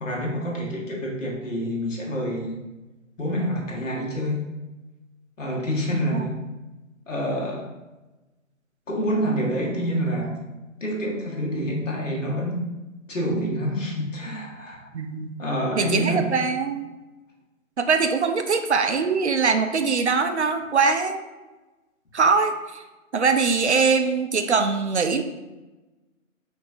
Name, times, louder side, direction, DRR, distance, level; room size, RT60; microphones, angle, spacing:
voice 1, 0.0-2.6 3.2-4.4 5.4-6.3 7.1-7.7 8.9-10.4 10.8-12.6 13.1-14.9 15.4-16.3, equal, 65° left, -2 dB, 1.3 m, -27 dB
voice 2, 14.9-15.3 15.8-16.9 17.8-21.2 22.1-22.8 23.1-25.2, right 5 dB, 55° right, 7 dB, 0.4 m, -22 dB
5.9 x 2.6 x 2.6 m, 1.1 s
figure-of-eight pair, 140°, 41 cm